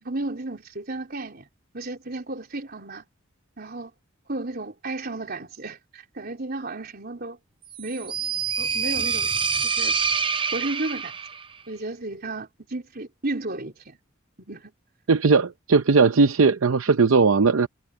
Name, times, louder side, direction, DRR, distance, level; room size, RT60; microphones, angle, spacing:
voice 1, 0.0-1.5 1.7-3.0 3.6-3.9 4.3-7.4 7.8-8.2 8.6-9.3 9.6-10.0 10.5-11.1 11.7-14.0 14.4-14.7, right 2 dB, 50° right, 3.9 m, -33 dB
sound 1, 7.7-11.5, right 6 dB, 25° right, 0.6 m, -26 dB
voice 2, 15.1-17.7, right 4 dB, 85° right, 0.7 m, -18 dB
head